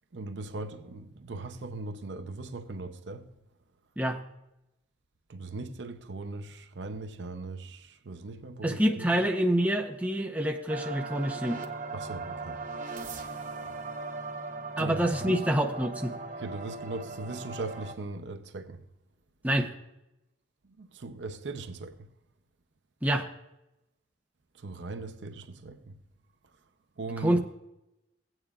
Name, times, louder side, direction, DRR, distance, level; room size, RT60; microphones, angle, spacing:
voice 1, 0.1-3.3 5.3-9.2 11.9-12.6 12.9-13.0 14.8-15.4 16.4-18.8 20.8-22.1 24.6-26.0 27.0-27.4, right 3 dB, 80° right, 0.7 m, -39 dB
voice 2, 8.6-11.6 14.8-16.2 19.4-19.7 23.0-23.3 27.2-27.4, right 1 dB, 10° right, 0.7 m, -27 dB
sound 1, 10.7-17.9, right 3 dB, 45° right, 1.0 m, -38 dB
16.5 x 9.0 x 2.4 m
head